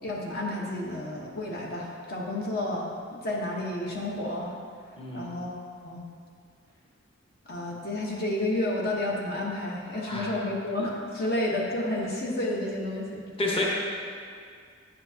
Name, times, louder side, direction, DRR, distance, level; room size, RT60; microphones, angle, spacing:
voice 1, 0.0-4.5 5.1-6.0 7.5-13.2, left 1 dB, 50° left, -2 dB, 1.1 m, -31 dB
voice 2, 5.0-5.4 10.1-10.4 13.4-13.6, left 2 dB, 30° left, -3 dB, 1.0 m, -30 dB
9.8 x 7.9 x 2.8 m, 2.1 s
head